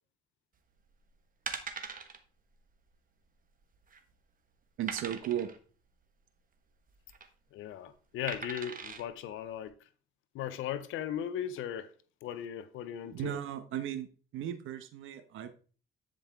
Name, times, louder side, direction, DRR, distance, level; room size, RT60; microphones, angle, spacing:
sound 1, 0.8-1.0 1.5-2.2 2.5-2.7 2.9-3.0 3.6-4.1 4.9-5.6 6.9-7.3 8.3-9.0 9.6-9.7, right 6 dB, 45° right, 1.2 m, -41 dB
voice 1, 4.8-5.5 13.1-14.1 14.3-15.5, right 10 dB, 85° right, 1.0 m, -36 dB
voice 2, 7.5-9.7 10.3-11.9 12.2-13.4, left 10 dB, 85° left, 0.6 m, -37 dB
10.0 x 5.2 x 3.5 m
cardioid pair, 90°, 20 cm